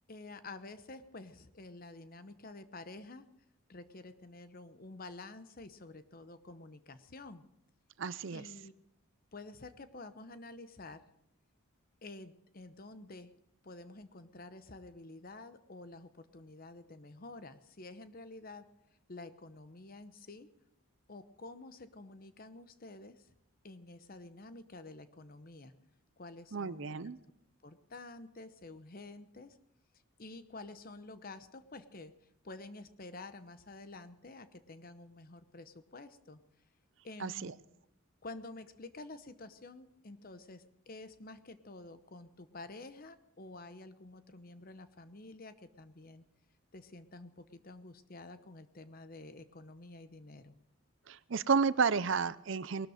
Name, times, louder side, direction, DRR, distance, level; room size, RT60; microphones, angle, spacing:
voice 1, 0.1-3.3 3.7-7.4 8.3-8.7 9.3-11.0 12.0-13.3 13.6-18.6 19.1-20.5 21.1-23.3 23.6-25.8 26.2-27.0 27.6-29.6 30.2-32.1 32.4-36.4 37.0-37.6 38.2-46.2 46.7-50.5, left 2 dB, 40° left, 12 dB, 0.8 m, -49 dB
voice 2, 8.0-8.4 26.5-27.2 37.2-37.5 51.1-52.9, right 5 dB, 60° right, 16 dB, 0.6 m, -31 dB
19.5 x 12.5 x 5.0 m, 0.83 s
head